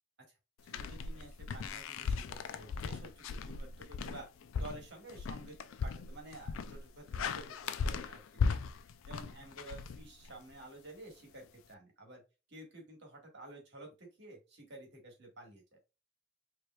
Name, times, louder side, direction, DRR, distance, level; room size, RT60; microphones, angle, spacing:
voice 1, 0.6-4.3 4.6-8.2 8.5-8.6 9.1-12.2 12.5-15.6, right 2 dB, 60° right, 1 dB, 1.7 m, -51 dB
sound 1, 0.7-10.5, left 5 dB, 75° left, 0.4 m, -37 dB
4.9 x 2.9 x 2.3 m, 0.28 s
head